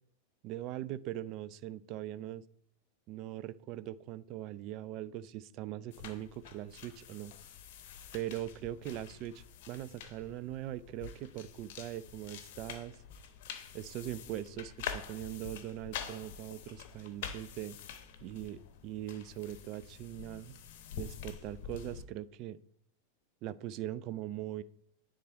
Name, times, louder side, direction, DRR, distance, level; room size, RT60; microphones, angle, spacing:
voice 1, 0.4-2.4 3.1-7.3 8.1-13.0 13.7-17.8 18.2-20.6 21.0-22.6 23.4-24.6, right 13 dB, 40° right, 16 dB, 0.4 m, -41 dB
sound 1, 5.9-22.0, left 8 dB, 50° left, 0.8 m, -47 dB
9.9 x 3.8 x 4.4 m, 0.64 s
figure-of-eight pair, 90°, 0 cm